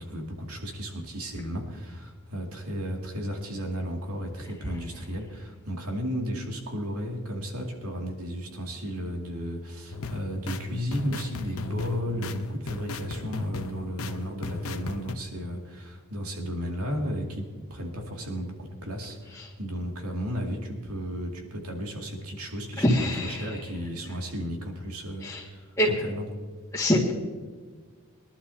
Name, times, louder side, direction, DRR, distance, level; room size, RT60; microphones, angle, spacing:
voice 1, 0.0-26.3, equal, 85° right, 0 dB, 2.5 m, -34 dB
sound 1, 9.9-15.1, left 3 dB, 65° left, 0.8 m, -36 dB
voice 2, 22.8-23.5 25.2-25.4 25.8-25.9 26.7-27.1, left 1 dB, 10° left, -9 dB, 2.0 m, -24 dB
22.5 x 11.5 x 2.8 m, 1.5 s
head